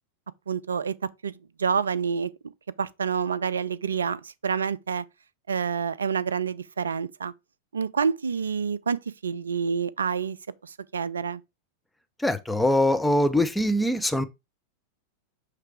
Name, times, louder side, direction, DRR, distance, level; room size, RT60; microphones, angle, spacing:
voice 1, 0.5-0.9 1.2-1.3 1.6-2.3 2.8-5.0 5.5-7.3 7.7-10.4 10.6-11.4, right 6 dB, 70° right, 0.4 m, -28 dB
voice 2, 12.2-14.2, left 1 dB, 5° left, 0.7 m, -23 dB
6.6 x 3.3 x 4.7 m
figure-of-eight pair, 90°, 0 cm